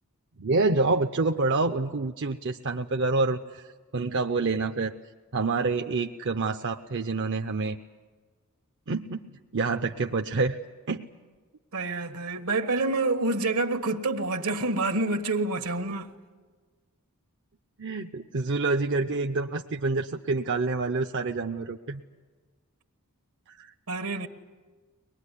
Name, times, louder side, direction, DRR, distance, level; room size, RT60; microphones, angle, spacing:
voice 1, 0.4-3.7 3.9-4.9 5.3-7.8 8.9-9.3 9.5-10.6 10.9-11.1 17.8-22.0 23.5-23.7, right 3 dB, 55° right, 0.7 m, -27 dB
voice 2, 11.7-16.1 23.9-24.3, right 2 dB, 75° right, 1.5 m, -27 dB
23.5 x 20.5 x 9.9 m
head